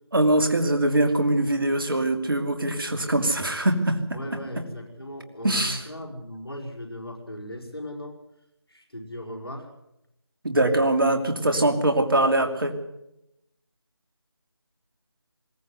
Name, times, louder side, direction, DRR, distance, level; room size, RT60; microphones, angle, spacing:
voice 1, 0.1-4.0 5.4-5.8 10.4-12.7, right 1 dB, 55° right, 6 dB, 2.7 m, -22 dB
voice 2, 4.1-8.2 8.7-9.7, left 1 dB, 65° left, 0 dB, 5.3 m, -37 dB
21.5 x 17.0 x 8.1 m, 0.85 s
figure-of-eight pair, 165°, 14 cm